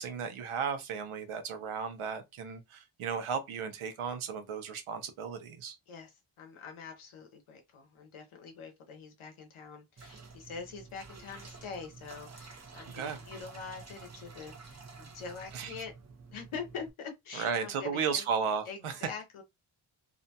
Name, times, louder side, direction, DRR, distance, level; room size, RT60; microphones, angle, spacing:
voice 1, 0.0-5.7 12.9-13.2 15.5-15.7 17.3-19.0, right 6 dB, 90° right, 0.7 m, -34 dB
voice 2, 5.9-15.9 16.3-18.3 18.7-19.4, left 5 dB, 80° left, 0.7 m, -44 dB
sound 1, 10.0-16.9, right 4 dB, 35° right, 0.6 m, -50 dB
2.6 x 2.2 x 2.7 m
wide cardioid pair, 120°, 48 cm